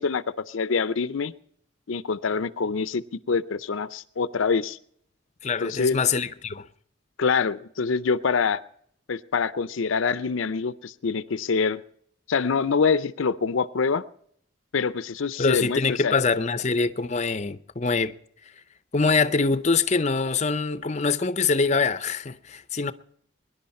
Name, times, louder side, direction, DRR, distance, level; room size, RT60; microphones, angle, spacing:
voice 1, 0.0-1.3 1.9-4.8 5.6-6.0 7.2-8.6 9.1-11.8 12.3-14.0 14.7-16.1, left 5 dB, 75° left, 0.5 m, -25 dB
voice 2, 5.4-6.7 15.4-18.2 18.9-22.9, left 4 dB, 35° left, 0.6 m, -24 dB
23.0 x 11.0 x 4.2 m
head